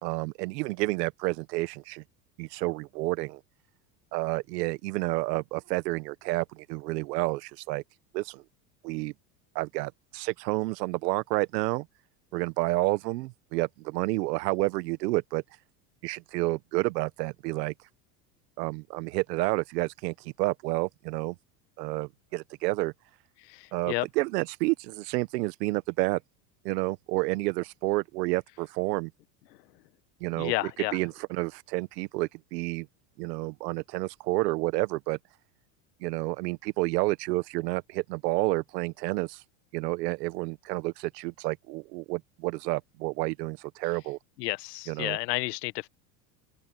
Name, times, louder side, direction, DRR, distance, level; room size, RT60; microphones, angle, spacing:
voice 1, 0.0-2.0 2.4-3.4 4.1-7.8 8.1-8.4 8.8-9.1 9.5-11.8 12.3-15.4 16.0-17.7 18.6-21.3 21.8-22.9 23.7-26.2 26.6-29.1 30.2-32.9 33.2-35.2 36.0-39.4 39.7-44.2 44.9-45.2, right 21 dB, 75° right, 1.4 m, -30 dB
voice 2, 23.5-24.0 30.3-31.0 44.4-45.9, left 21 dB, 80° left, 1.3 m, -31 dB
open air
supercardioid pair, 95°, 49 cm